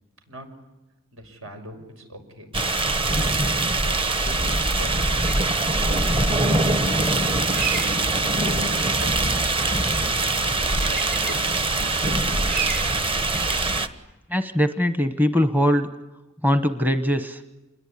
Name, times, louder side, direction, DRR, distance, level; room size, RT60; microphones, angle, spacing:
voice 1, 1.1-2.8 3.8-7.8 8.0-11.8, equal, 75° right, 6 dB, 6.1 m, -41 dB
sound 1, 2.5-13.9, right 2 dB, 25° right, 1.3 m, -23 dB
sound 2, 3.9-13.8, right 3 dB, 50° right, 3.2 m, -34 dB
voice 2, 14.3-15.9 16.4-17.4, equal, 10° right, 9 dB, 1.0 m, -21 dB
28.0 x 21.5 x 10.0 m, 1.0 s
head